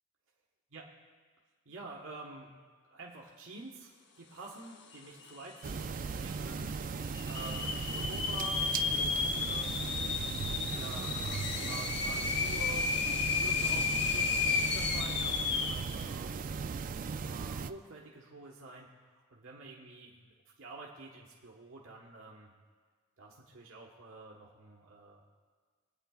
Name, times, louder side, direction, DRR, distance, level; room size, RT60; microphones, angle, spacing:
voice 1, 1.6-2.5 2.9-3.9 4.2-6.7 7.3-10.0 10.7-12.9 13.4-16.3 17.0-22.5 23.2-25.3, right 3 dB, 75° right, -2 dB, 1.3 m, -48 dB
sound 1, 4.9-5.0 5.2-5.8 6.3-6.4 7.1-15.9, left 5 dB, 55° left, 0.7 m, -33 dB
sound 2, 5.6-17.7, right 5 dB, 40° right, 0.3 m, -37 dB
24.5 x 9.1 x 2.4 m, 1.5 s
head